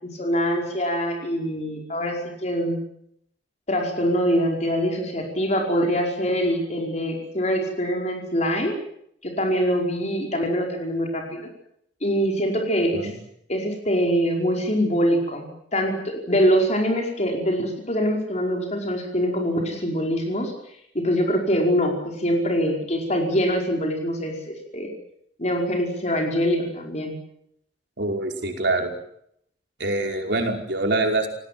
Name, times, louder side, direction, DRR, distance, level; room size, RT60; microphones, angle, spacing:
voice 1, 0.0-2.8 3.7-8.7 9.2-11.5 12.0-13.1 13.5-20.5 20.9-24.9 25.4-27.2, equal, 40° left, 1 dB, 5.1 m, -24 dB
voice 2, 28.0-28.9 29.8-31.3, right 2 dB, 65° right, 3 dB, 5.1 m, -24 dB
29.5 x 19.0 x 7.8 m, 0.73 s
head